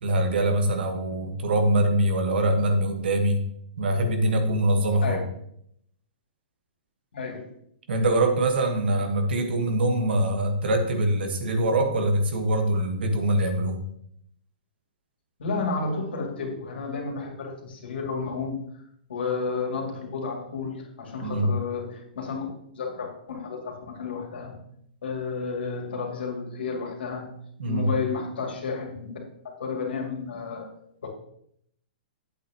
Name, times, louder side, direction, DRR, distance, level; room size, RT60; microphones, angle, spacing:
voice 1, 0.0-3.4 3.8-5.2 7.9-13.8 21.2-21.5 27.6-27.9, right 1 dB, 75° right, 5 dB, 1.5 m, -23 dB
voice 2, 7.1-7.6 15.4-18.6 19.1-22.5 22.8-24.6 25.0-27.3 27.7-29.2 29.4-30.7 31.0-31.1, left 4 dB, 85° left, 0 dB, 2.6 m, -32 dB
8.7 x 8.2 x 3.0 m, 0.71 s
hypercardioid pair, 135°, 6 cm